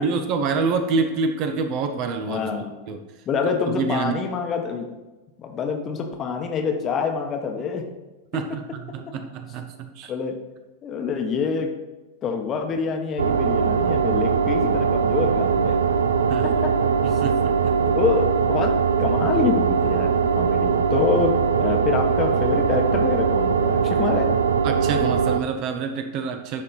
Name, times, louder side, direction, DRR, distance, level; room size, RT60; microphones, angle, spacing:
voice 1, 0.0-2.5 2.9-3.0 3.8-4.2 8.3-10.1 16.1-16.5 17.0-17.9 24.6-26.6, right 4 dB, 40° right, 7 dB, 0.7 m, -27 dB
voice 2, 2.3-2.7 3.3-4.9 5.4-7.9 8.3-8.4 10.1-10.4 10.8-11.7 12.2-15.8 16.4-17.2 17.8-18.7 19.0-24.3, left 5 dB, 30° left, 4 dB, 1.0 m, -26 dB
sound 1, 13.2-25.4, right 6 dB, 70° right, 0.4 m, -21 dB
11.0 x 4.3 x 4.0 m, 1.1 s
figure-of-eight pair, 90°, 0 cm